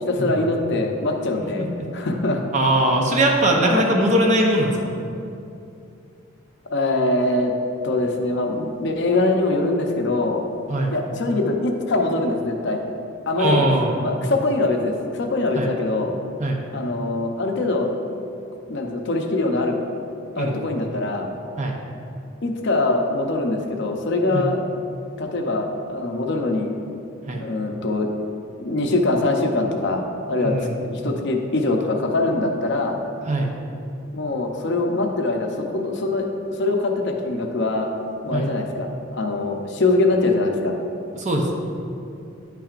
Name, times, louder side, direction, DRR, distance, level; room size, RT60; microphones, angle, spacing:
voice 1, 0.1-1.7 1.9-2.4 3.6-3.8 6.7-7.5 7.8-10.4 10.9-12.8 13.3-13.6 14.0-16.1 16.7-17.9 18.7-19.8 20.4-21.3 22.4-24.6 25.2-26.7 27.3-28.1 28.6-33.0 34.1-36.3 36.6-37.9 38.2-40.8, left 2 dB, 60° left, 3 dB, 0.7 m, -23 dB
voice 2, 2.5-4.8 10.7-11.0 13.4-14.0 15.5-15.7 16.4-16.6 20.3-20.6 21.6-21.8 24.3-24.4 27.3-27.4 30.4-30.8 33.2-33.5 38.3-38.5 41.1-41.6, right 1 dB, 35° right, 1 dB, 0.7 m, -21 dB
10.0 x 5.7 x 2.5 m, 2.6 s
head